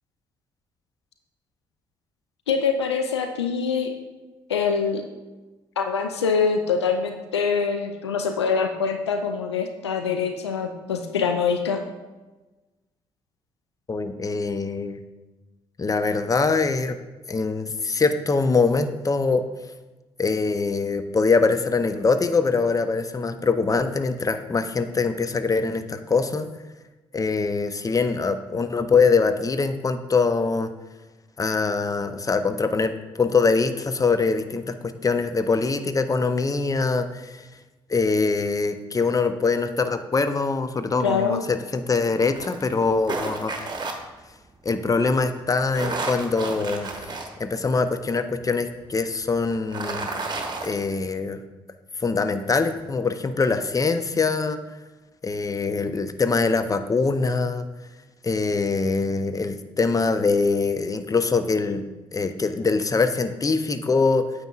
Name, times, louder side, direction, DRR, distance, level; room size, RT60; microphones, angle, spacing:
voice 1, 2.5-3.9 4.5-5.1 5.8-11.8 41.0-41.4, left 5 dB, 90° left, 6 dB, 0.4 m, -24 dB
voice 2, 13.9-15.0 15.8-17.0 17.3-19.4 20.2-26.5 27.1-30.7 31.4-37.4 37.9-43.5 44.6-46.9 47.4-50.1 50.6-51.4 52.0-54.6 55.2-57.7 58.2-61.8 62.1-64.3, left 4 dB, 25° left, 10 dB, 0.6 m, -23 dB
sound 1, 42.4-43.9 45.6-47.3 47.8-47.9 49.5-50.7, right 3 dB, 30° right, 1.2 m, -31 dB
9.0 x 6.6 x 2.4 m, 1.2 s
figure-of-eight pair, 40°, 14 cm